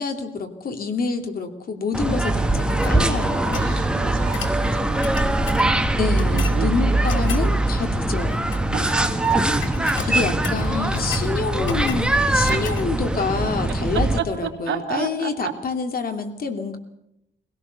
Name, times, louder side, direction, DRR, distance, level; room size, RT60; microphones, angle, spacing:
voice 1, 0.0-3.7 6.0-8.5 10.1-16.8, left 4 dB, 50° left, 6 dB, 2.8 m, -27 dB
sound 1, 1.9-14.2, right 2 dB, 5° right, 1.5 m, -22 dB
sound 2, 2.5-3.8 4.3-4.6 5.0-5.7 6.2-6.6 7.1-7.5 8.3-8.9 9.1-9.4 9.6-11.3 11.6-12.1 12.4-12.9, left 5 dB, 80° left, 2.4 m, -33 dB
voice 2, 3.6-6.0 6.3-7.0 8.7-10.2 10.6-10.9 12.5-12.8 13.7-13.8 14.2-15.5, right 8 dB, 85° right, 2 dB, 3.1 m, -33 dB
23.0 x 17.5 x 6.9 m, 0.81 s
wide cardioid pair, 150°, 19 cm